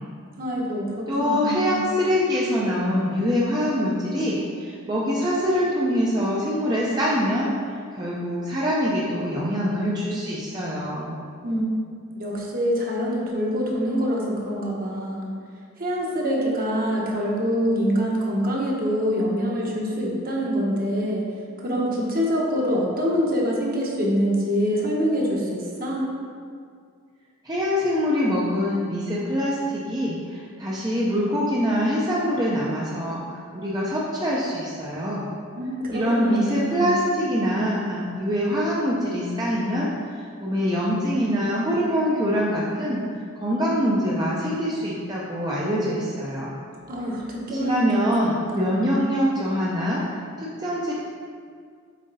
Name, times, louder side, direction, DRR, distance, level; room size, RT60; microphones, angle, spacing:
voice 1, 0.4-1.8 11.4-11.6 12.1-15.3 15.8-21.2 21.6-26.1 35.6-37.0 46.9-48.6, equal, 45° right, -3 dB, 1.2 m, -25 dB
voice 2, 1.1-7.5 8.0-11.2 27.4-33.2 33.5-35.2 35.9-43.0 43.4-46.5 47.5-50.9, equal, 20° right, -6 dB, 0.7 m, -24 dB
7.4 x 4.3 x 4.0 m, 2.1 s
head